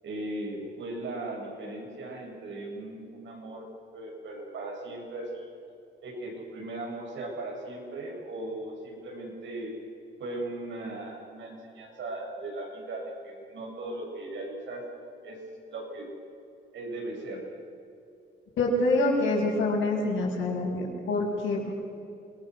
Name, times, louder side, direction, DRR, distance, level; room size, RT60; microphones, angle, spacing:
voice 1, 0.0-3.7 3.9-5.5 6.0-9.7 10.2-14.8 15.2-15.4 15.6-16.1 16.7-17.4, right 2 dB, 70° right, 0 dB, 7.7 m, -38 dB
voice 2, 18.6-21.7, left 2 dB, 75° left, -8 dB, 6.2 m, -26 dB
29.0 x 20.0 x 6.4 m, 2.7 s
cardioid pair, 90°, 20 cm